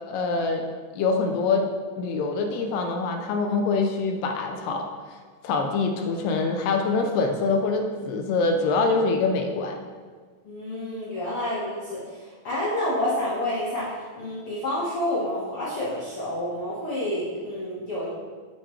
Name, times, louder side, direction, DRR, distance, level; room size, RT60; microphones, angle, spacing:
voice 1, 0.1-0.6 0.9-1.7 2.0-4.9 5.4-9.8, left 4 dB, 75° left, 3 dB, 2.2 m, -24 dB
voice 2, 10.4-18.1, left 1 dB, 50° left, -8 dB, 2.0 m, -29 dB
9.9 x 7.7 x 3.3 m, 1.5 s
omnidirectional pair, 4.3 m